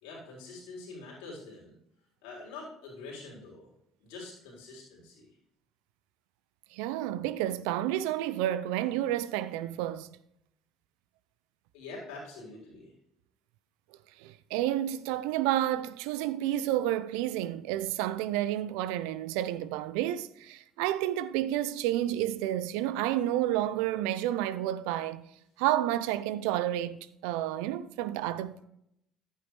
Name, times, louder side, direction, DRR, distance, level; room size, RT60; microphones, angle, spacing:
voice 1, 0.0-1.7 2.2-3.7 4.0-5.3 11.7-12.9, left 3 dB, 70° left, 3.9 m, -45 dB
voice 2, 6.7-10.1 14.2-25.2 25.6-28.7, right 13 dB, 75° right, 0.5 m, -30 dB
11.0 x 9.2 x 3.2 m
hypercardioid pair, 55°, 0 cm